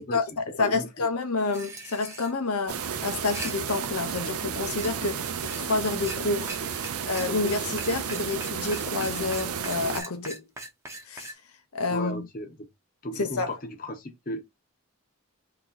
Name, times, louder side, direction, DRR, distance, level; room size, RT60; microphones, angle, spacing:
voice 1, 0.0-10.4 11.1-11.3 11.7-12.3 13.2-13.5, left 3 dB, 90° left, 0.8 m, -29 dB
voice 2, 0.6-1.1 11.9-12.7 13.0-14.4, left 1 dB, 40° left, 0.8 m, -35 dB
sound 1, 1.5-2.3 3.1-3.5 4.8-4.9 5.5-5.6 6.0-6.2 6.5-6.6 6.8-6.9 7.2-11.3, right 2 dB, 10° right, 0.7 m, -39 dB
sound 2, 2.7-10.0, right 7 dB, 80° right, 0.5 m, -32 dB
3.0 x 2.9 x 3.8 m
head